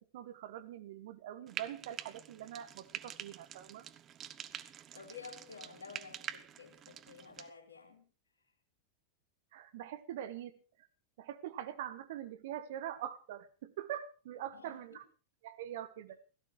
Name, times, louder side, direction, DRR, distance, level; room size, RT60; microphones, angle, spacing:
voice 1, 0.0-3.9 9.5-10.5 11.2-15.0 15.4-16.2, right 11 dB, 55° right, 1.4 m, -43 dB
Frying (food), 1.5-7.5, right 9 dB, 30° right, 0.9 m, -47 dB
voice 2, 4.9-8.1 14.5-15.0, left 5 dB, 70° left, 3.1 m, -52 dB
16.5 x 14.5 x 4.7 m
figure-of-eight pair, 90°, 0 cm